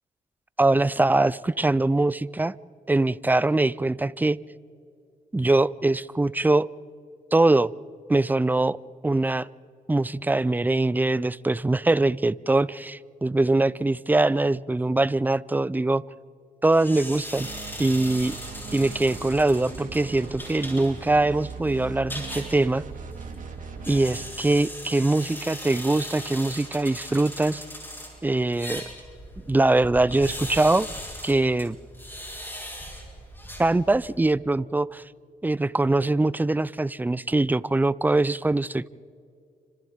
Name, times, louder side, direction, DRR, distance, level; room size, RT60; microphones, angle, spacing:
voice 1, 0.6-2.5 2.9-4.4 5.3-6.7 7.3-7.7 8.1-8.8 9.0-9.5 9.9-16.0 16.6-17.5 17.8-18.4 18.7-22.8 23.9-27.6 28.2-28.8 29.5-30.9 31.2-31.8 33.6-35.0 35.4-38.9, right 2 dB, 10° right, 19 dB, 0.4 m, -22 dB
sound 1, 16.7-34.2, equal, 15° left, 7.0 m, -39 dB
sound 2, 17.3-24.4, right 5 dB, 60° right, 2.2 m, -39 dB
29.5 x 26.0 x 3.6 m, 2.5 s
cardioid pair, 85°, 15 cm